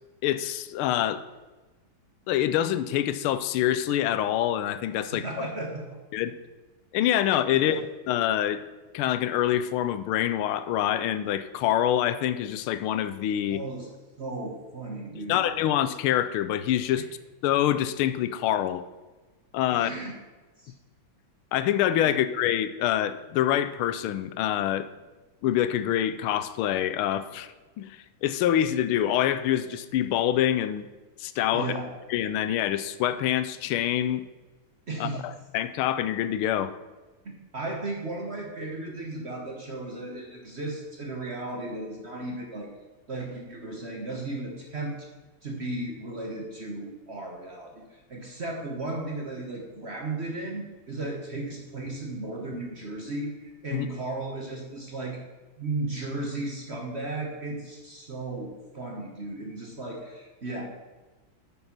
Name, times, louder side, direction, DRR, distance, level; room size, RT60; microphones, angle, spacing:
voice 1, 0.2-1.3 2.3-5.2 6.1-6.3 6.9-8.6 8.9-13.6 15.1-17.0 17.4-18.9 19.5-19.9 21.5-24.9 25.4-30.9 31.2-31.7 32.1-34.2 35.0-36.7 53.7-53.9, left 11 dB, 85° left, 13 dB, 1.5 m, -26 dB
voice 2, 5.1-6.0 7.5-7.8 13.5-13.9 14.2-15.4 19.7-20.1 20.6-20.7 22.0-22.2 31.5-31.9 34.9-35.2 37.2-42.7 43.1-44.9 45.4-55.2 55.6-60.6, right 2 dB, 40° right, 0 dB, 1.1 m, -35 dB
9.3 x 5.4 x 5.9 m, 1.2 s
omnidirectional pair, 2.3 m